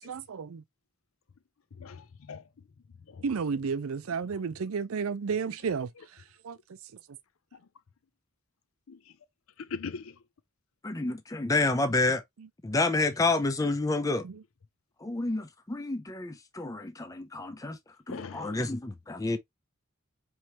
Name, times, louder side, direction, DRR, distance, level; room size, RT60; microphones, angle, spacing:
voice 1, 0.1-0.6 3.2-6.6 14.2-14.3, right 5 dB, 80° right, 0.5 m, -32 dB
voice 2, 1.8-2.4 3.1-3.2 8.9-9.0 9.6-10.1 18.1-18.6, left 5 dB, 75° left, 0.5 m, -40 dB
voice 3, 10.8-12.2 12.6-14.3 15.0-17.8 18.1-19.4, left 2 dB, 15° left, 0.4 m, -29 dB
4.4 x 3.2 x 2.9 m
head